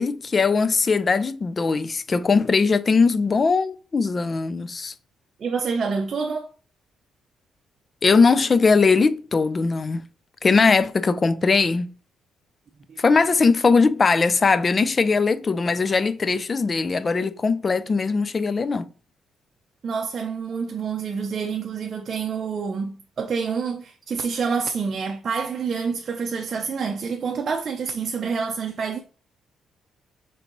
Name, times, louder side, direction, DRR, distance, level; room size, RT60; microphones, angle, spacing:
voice 1, 0.0-4.9 8.0-10.0 10.4-11.9 13.0-18.9, left 4 dB, 35° left, 0.4 m, -20 dB
voice 2, 5.4-6.5 12.9-13.0 19.8-29.0, right 5 dB, 50° right, 0.5 m, -27 dB
4.6 x 3.9 x 3.0 m
cardioid pair, 90°, 0 cm